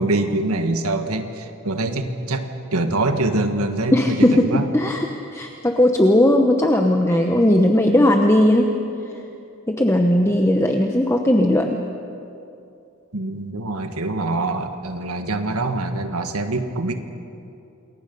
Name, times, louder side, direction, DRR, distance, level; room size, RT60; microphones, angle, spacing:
voice 1, 0.0-4.7 13.1-16.9, right 2 dB, 80° right, 6 dB, 1.7 m, -24 dB
voice 2, 3.9-5.1 5.3-8.7 9.7-11.8, left 1 dB, 10° left, 3 dB, 0.9 m, -17 dB
28.5 x 22.0 x 5.5 m, 2.7 s
head